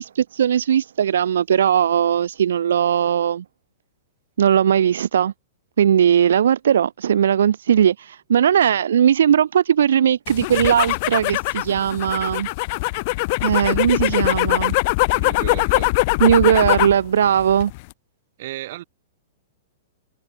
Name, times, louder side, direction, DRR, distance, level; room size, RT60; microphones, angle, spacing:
voice 1, 0.0-3.4 4.4-5.3 5.8-12.5 13.4-14.8 16.2-17.7, right 9 dB, 80° right, 0.6 m, -18 dB
sound 1, 10.3-17.0 17.4-17.9, left 25 dB, 45° left, 2.2 m, -22 dB
voice 2, 15.1-16.0 18.4-18.8, right 15 dB, 55° right, 4.8 m, -34 dB
hypercardioid pair, 150°, 0 cm